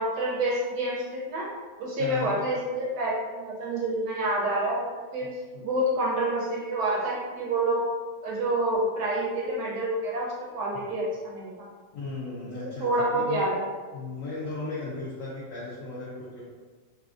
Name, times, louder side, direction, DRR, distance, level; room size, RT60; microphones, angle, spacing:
voice 1, 0.0-1.5 1.8-5.3 5.6-7.8 8.2-11.7 12.8-13.6, right 1 dB, 70° right, -4 dB, 1.1 m, -28 dB
voice 2, 2.0-2.3 11.9-13.5 13.9-16.4, left 3 dB, 75° left, -7 dB, 0.7 m, -35 dB
3.3 x 2.6 x 2.4 m, 1.4 s
omnidirectional pair, 2.1 m